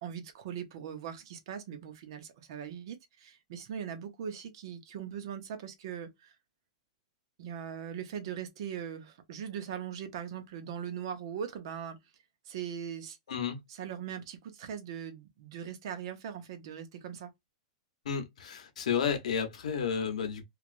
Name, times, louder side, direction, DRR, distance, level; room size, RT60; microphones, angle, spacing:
voice 1, 0.0-6.3 7.4-12.0 12.5-13.2 13.7-17.3, right 8 dB, 45° right, 0.6 m, -40 dB
voice 2, 13.3-13.6 18.1-20.4, left 7 dB, 75° left, 0.9 m, -32 dB
3.0 x 2.4 x 2.4 m
supercardioid pair, 180°, 4 cm